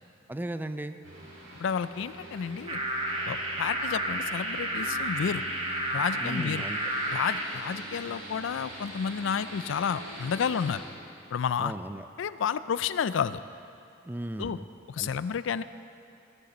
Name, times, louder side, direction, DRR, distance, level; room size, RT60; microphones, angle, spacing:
voice 1, 0.3-1.0 6.2-6.8 11.6-12.1 14.1-14.7 15.0-15.1, right 1 dB, 10° right, 9 dB, 0.4 m, -36 dB
sound 1, 1.0-10.8, right 1 dB, 65° right, 3.7 m, -44 dB
voice 2, 1.6-2.8 3.3-5.4 5.9-6.6 7.1-10.8 11.3-11.7 12.2-13.4 14.4-14.6 14.9-15.6, left 7 dB, 65° left, 15 dB, 0.4 m, -30 dB
sound 2, 2.7-7.4, right 1 dB, 30° right, 1.3 m, -31 dB
16.5 x 6.5 x 7.0 m, 2.6 s
head